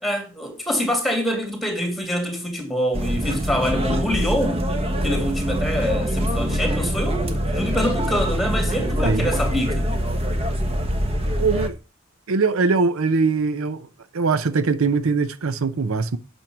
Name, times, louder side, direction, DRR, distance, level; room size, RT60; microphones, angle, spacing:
voice 1, 0.0-4.6 5.0-9.9, equal, ahead, 2.5 m, -25 dB
sound 1, 2.9-11.7, equal, 25° right, 1.3 m, -24 dB
voice 2, 11.4-11.8 12.3-13.9 14.1-16.2, right 4 dB, 70° right, 0.7 m, -22 dB
9.1 x 6.3 x 5.9 m
head